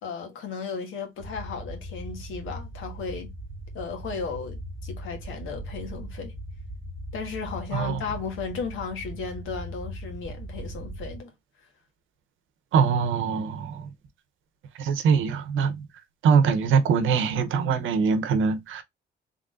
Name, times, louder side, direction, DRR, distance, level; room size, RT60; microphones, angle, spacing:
voice 1, 0.0-3.3 3.7-6.3 7.1-11.3, left 5 dB, 85° left, 1.4 m, -35 dB
sound 1, 1.2-11.2, right 1 dB, 10° right, 1.5 m, -39 dB
voice 2, 7.7-8.0 12.7-13.9 14.8-15.8 16.2-18.8, right 6 dB, 80° right, 0.8 m, -23 dB
3.6 x 3.5 x 2.5 m
cardioid pair, 90°, 20 cm